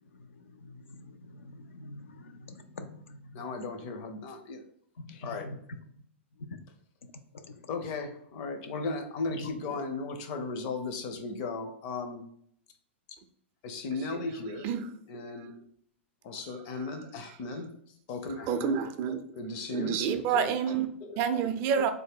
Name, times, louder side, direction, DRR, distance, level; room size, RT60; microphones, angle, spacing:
voice 1, 0.6-3.4 5.0-5.1 5.4-5.6 7.3-7.5 9.3-9.5, left 2 dB, 85° left, 8 dB, 0.4 m, -45 dB
voice 2, 3.3-4.6 5.1-5.5 7.7-12.2 13.6-14.7 15.1-15.5 16.2-17.7 18.1-18.8 19.3-20.0 20.3-21.4 21.8-21.9, left 3 dB, 45° left, 6 dB, 0.6 m, -36 dB
voice 3, 16.4-16.9 17.5-17.6 18.4-19.2 19.5-20.9 21.2-21.9, right 7 dB, 40° right, 9 dB, 0.4 m, -29 dB
3.4 x 2.1 x 3.6 m, 0.67 s
hypercardioid pair, 120°, 7 cm